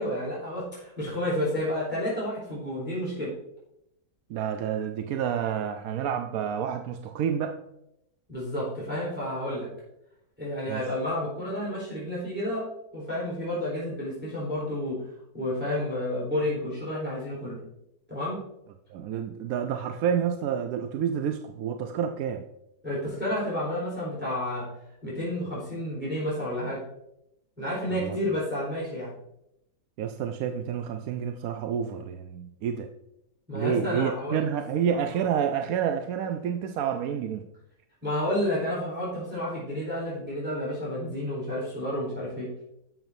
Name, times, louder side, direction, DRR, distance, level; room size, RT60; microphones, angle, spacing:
voice 1, 0.0-3.3 8.3-9.7 10.4-15.0 15.3-17.6 18.1-18.4 22.8-24.7 25.0-26.8 27.6-29.1 33.5-34.4 38.0-42.5, left 1 dB, 5° right, -7 dB, 3.7 m, -30 dB
voice 2, 4.3-7.6 10.7-10.8 18.9-22.5 28.0-28.2 30.0-32.9 33.5-37.4, right 8 dB, 70° right, 6 dB, 0.9 m, -29 dB
11.5 x 7.1 x 2.7 m, 0.81 s
omnidirectional pair, 1.8 m